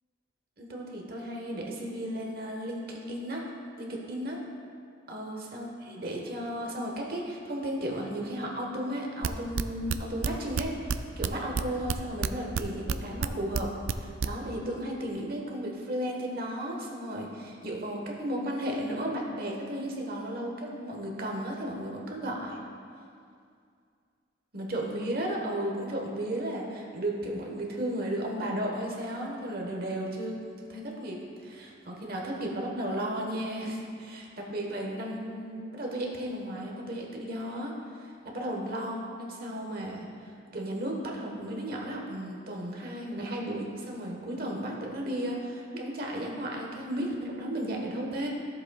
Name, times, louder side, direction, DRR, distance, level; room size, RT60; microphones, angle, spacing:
voice 1, 0.6-3.5 3.8-4.4 5.1-22.6 24.5-30.4 30.7-31.2 31.4-48.3, right 1 dB, 45° right, -1 dB, 1.2 m, -34 dB
sound 1, 9.2-11.0 11.2-12.9 13.2-14.3, right 6 dB, 75° right, 0.3 m, -28 dB
13.5 x 7.6 x 2.3 m, 2.3 s
head